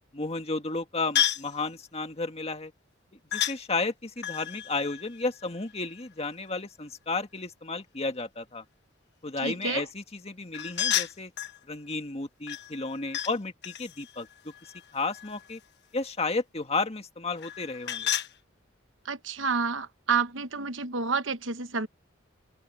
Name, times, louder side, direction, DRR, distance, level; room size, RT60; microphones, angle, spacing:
voice 1, 0.1-2.7 3.3-8.6 9.2-11.3 11.7-14.5 14.9-15.6 15.9-18.1, left 3 dB, 30° left, 1.9 m, -33 dB
sound 1, 1.1-1.5 3.3-3.6 4.2-6.0 10.5-11.6 12.5-13.3 13.6-15.5 17.4-18.3, left 11 dB, 60° left, 1.3 m, -31 dB
voice 2, 9.4-9.8 19.0-21.9, right 5 dB, 70° right, 1.2 m, -29 dB
open air
head